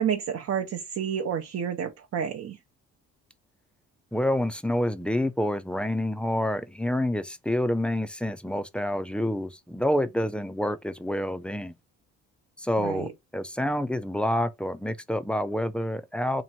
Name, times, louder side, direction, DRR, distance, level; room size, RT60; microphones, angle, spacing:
voice 1, 0.0-2.6 12.8-13.1, right 8 dB, 55° right, 0.7 m, -29 dB
voice 2, 4.1-11.7 12.6-16.4, left 1 dB, 5° left, 0.4 m, -28 dB
3.0 x 2.6 x 4.2 m
cardioid pair, 90°, 30 cm